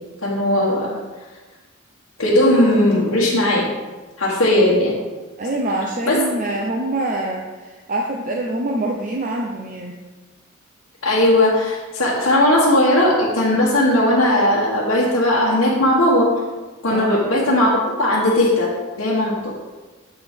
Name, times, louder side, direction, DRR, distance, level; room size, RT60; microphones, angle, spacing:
voice 1, 0.2-0.9 2.2-3.7 4.2-5.0 6.1-6.2 11.0-16.3 16.8-18.7 19.0-19.5, left 1 dB, 65° left, -7 dB, 1.2 m, -17 dB
voice 2, 5.4-10.0 16.9-17.1, right 2 dB, 40° right, 0 dB, 0.6 m, -25 dB
7.7 x 6.7 x 3.6 m, 1.3 s
head